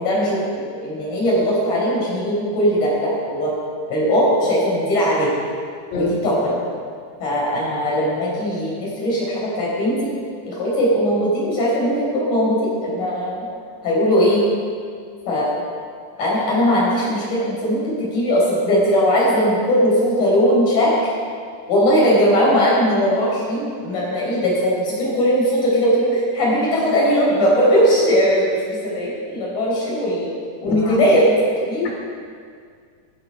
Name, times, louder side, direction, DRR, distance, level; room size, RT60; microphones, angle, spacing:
voice 1, 0.0-3.5 3.9-5.3 5.9-6.5 7.2-10.1 10.5-13.5 13.8-14.4 15.3-15.5 16.2-21.1 21.7-30.3 30.6-31.3 31.6-31.9, equal, 50° left, -5 dB, 5.8 m, -19 dB
voice 2, 30.6-31.0, left 2 dB, 85° left, -2 dB, 5.0 m, -24 dB
14.5 x 12.5 x 5.6 m, 2.1 s
omnidirectional pair, 4.7 m